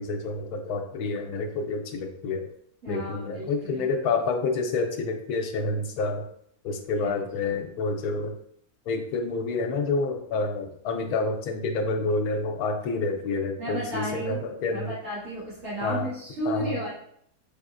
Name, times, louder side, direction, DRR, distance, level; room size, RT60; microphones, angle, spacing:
voice 1, 0.0-2.4 2.9-6.3 6.6-8.3 8.9-14.9 15.8-16.1 16.5-16.7, left 3 dB, 85° left, 4 dB, 1.1 m, -28 dB
voice 2, 2.8-3.9 7.0-7.1 7.4-7.5 13.6-16.9, equal, 60° right, -13 dB, 2.5 m, -34 dB
5.5 x 3.4 x 2.4 m, 0.68 s
omnidirectional pair, 1.6 m